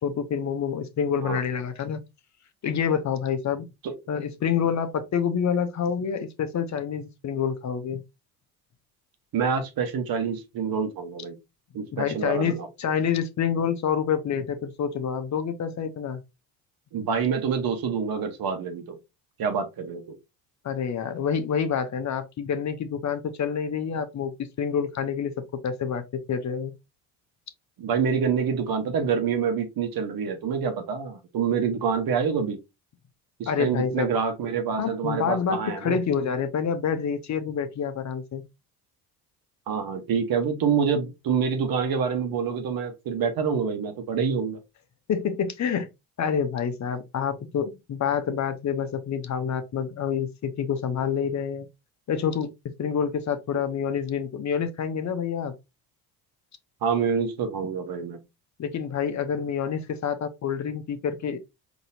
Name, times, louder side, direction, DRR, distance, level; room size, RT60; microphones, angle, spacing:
voice 1, 0.0-2.0 2.6-3.7 4.1-8.0 11.9-16.2 20.6-26.7 33.5-34.1 34.8-38.4 45.1-45.9 46.2-51.7 52.1-52.5 52.8-55.5 58.6-61.4, left 7 dB, 40° left, 0.8 m, -27 dB
voice 2, 9.3-11.4 11.7-12.7 16.9-19.0 19.4-20.1 27.8-32.6 33.4-36.0 39.7-44.6 56.8-58.2, right 6 dB, 55° right, 1.1 m, -26 dB
4.0 x 3.0 x 2.6 m
supercardioid pair, 70°, 43 cm